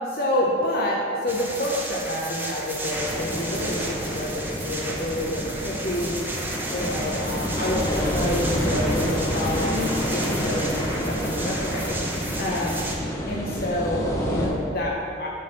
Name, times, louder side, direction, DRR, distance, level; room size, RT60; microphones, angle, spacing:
voice 1, 0.1-6.3 6.7-11.9 12.4-12.8 13.3-15.3, left 1 dB, 50° left, -3 dB, 0.8 m, -28 dB
sound 1, 1.3-12.9, right 1 dB, 10° right, 0.7 m, -33 dB
sound 2, 2.9-14.5, equal, 15° left, 0.9 m, -28 dB
7.6 x 4.0 x 6.5 m, 2.8 s
head